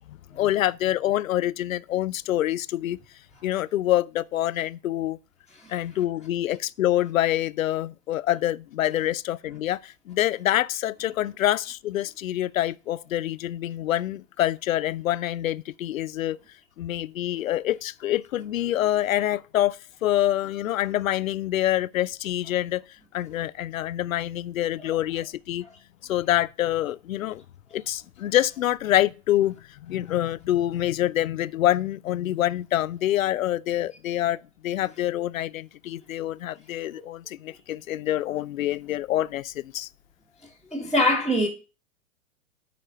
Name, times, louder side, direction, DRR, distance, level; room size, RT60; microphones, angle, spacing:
voice 1, 0.1-3.0 3.4-5.2 5.7-16.4 16.8-22.8 23.1-25.7 26.0-27.4 27.7-34.4 34.6-39.9, left 13 dB, 80° left, 0.5 m, -26 dB
voice 2, 40.7-41.5, left 1 dB, ahead, 1.3 m, -24 dB
9.2 x 4.3 x 6.6 m
hypercardioid pair, 105°, 40 cm